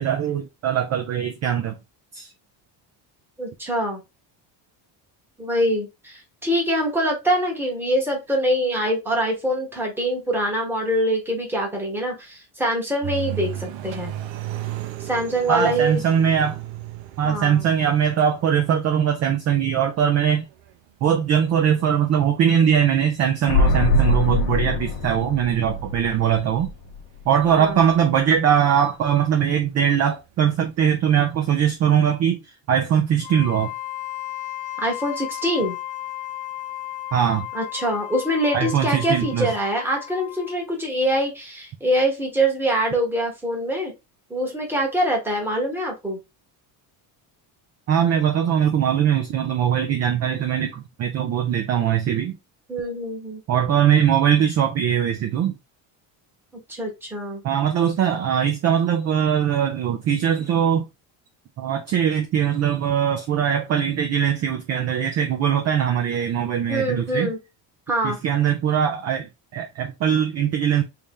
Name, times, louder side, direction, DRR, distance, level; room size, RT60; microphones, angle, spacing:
voice 1, 0.0-1.8 2.1-2.3 15.5-16.6 17.2-20.4 21.0-26.7 27.3-33.7 37.1-37.5 38.5-39.5 47.9-52.4 53.5-55.5 57.4-60.9 61.6-67.3 68.0-70.8, right 8 dB, 35° right, 0.4 m, -21 dB
voice 2, 3.4-4.0 5.4-14.1 15.0-16.0 17.2-17.6 27.5-27.8 34.8-35.8 37.5-43.9 44.3-46.2 52.7-53.4 56.7-57.4 66.7-67.4 67.9-68.2, right 1 dB, 5° right, 1.0 m, -24 dB
sound 1, 13.0-27.0 27.6-27.7 28.1-30.7 31.0-31.7, right 14 dB, 70° right, 0.6 m, -37 dB
sound 2, 23.5-27.2 27.5-27.6, left 2 dB, 50° left, 0.5 m, -23 dB
Wind instrument woodwind instrument, 33.2-40.7, left 14 dB, 65° left, 1.0 m, -34 dB
3.1 x 2.8 x 3.4 m
cardioid pair, 170°, 47 cm